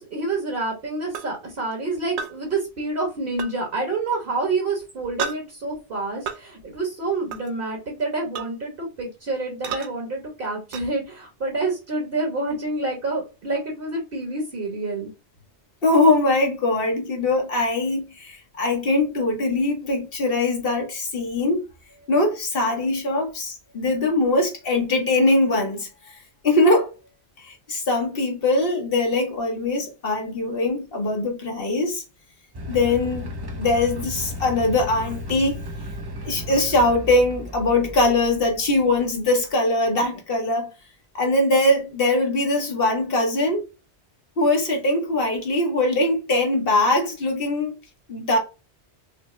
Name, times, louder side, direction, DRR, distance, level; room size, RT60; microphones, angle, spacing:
voice 1, 0.0-15.1, right 3 dB, 55° right, 1.4 m, -28 dB
sound 1, 1.1-1.3 2.2-2.3 3.4-3.5 5.2-5.4 6.3-6.4 7.3-7.5 8.3-8.5 9.6-9.9 10.7-10.8, right 6 dB, 75° right, 0.9 m, -30 dB
voice 2, 15.8-21.6 22.1-26.9 27.4-32.0 32.7-33.3 33.5-35.5 36.2-40.7 41.1-43.7 44.4-47.8 48.1-48.4, left 2 dB, 55° left, 1.4 m, -22 dB
sound 2, 32.5-39.5, left 1 dB, 30° right, 0.5 m, -35 dB
5.7 x 2.2 x 3.2 m
omnidirectional pair, 1.2 m